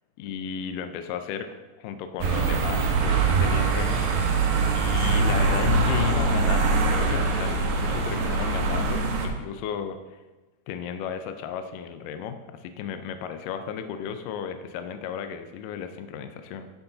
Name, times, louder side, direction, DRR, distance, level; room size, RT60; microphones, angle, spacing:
voice 1, 0.2-4.4 4.8-10.2 10.7-16.7, left 7 dB, 90° left, 8 dB, 1.9 m, -35 dB
sound 1, 2.2-9.3, right 3 dB, 80° right, 3.2 m, -23 dB
9.4 x 7.1 x 3.9 m, 1.1 s
omnidirectional pair, 4.7 m